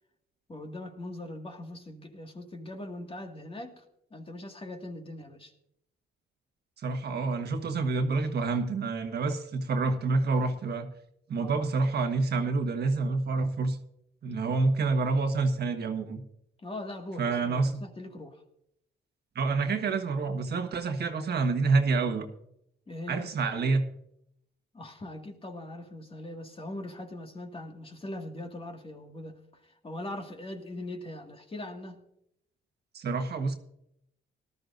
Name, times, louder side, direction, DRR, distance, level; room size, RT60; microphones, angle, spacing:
voice 1, 0.5-3.8 4.1-5.5 11.4-11.7 14.5-14.6 16.6-18.4 22.9-23.3 24.7-32.0, left 1 dB, 30° left, 3 dB, 2.0 m, -41 dB
voice 2, 6.8-10.9 11.3-13.8 14.2-16.2 17.2-17.8 19.3-22.3 23.1-23.8 32.9-33.5, right 3 dB, 55° right, 6 dB, 1.4 m, -28 dB
18.5 x 12.5 x 2.6 m, 0.77 s
cardioid pair, 90°, 20 cm